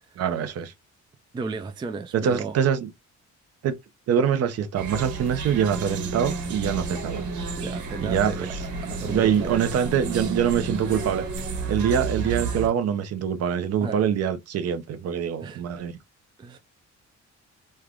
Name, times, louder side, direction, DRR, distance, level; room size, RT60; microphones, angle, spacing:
voice 1, 0.2-0.7 2.1-2.9 3.6-3.8 4.1-7.3 8.0-8.6 9.1-11.2 11.7-15.9, right 8 dB, 55° right, 0.7 m, -24 dB
voice 2, 1.3-2.6 7.6-8.5 8.9-9.6 13.8-14.1 15.4-15.6 16.4-16.6, right 4 dB, 15° right, 0.3 m, -34 dB
sound 1, 4.7-12.7, right 4 dB, 80° right, 1.3 m, -31 dB
3.2 x 2.4 x 3.4 m
cardioid pair, 175°, 29 cm